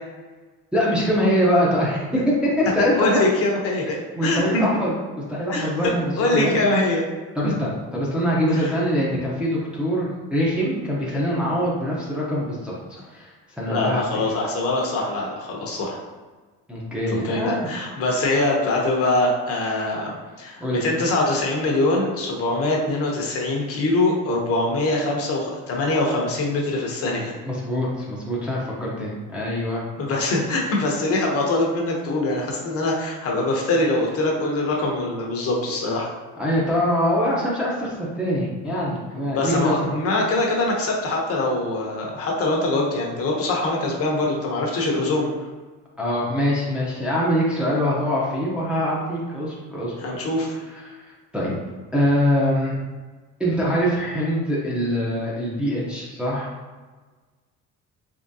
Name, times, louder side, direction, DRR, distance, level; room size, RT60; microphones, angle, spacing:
voice 1, 0.7-3.1 4.2-4.9 5.3-6.5 7.4-12.7 13.1-14.0 16.7-17.7 20.6-20.8 27.4-29.8 36.4-39.7 46.0-50.2 50.8-51.0 51.3-51.5 51.9-52.8 53.4-56.5, equal, 5° right, -7 dB, 0.6 m, -23 dB
voice 2, 2.8-4.7 5.5-7.1 7.4-7.6 8.5-8.7 13.7-16.0 17.1-27.3 30.0-36.1 39.3-45.3 50.0-50.6, left 2 dB, 45° left, -1 dB, 0.8 m, -23 dB
3.6 x 3.0 x 2.6 m, 1.3 s
cardioid pair, 155°, 32 cm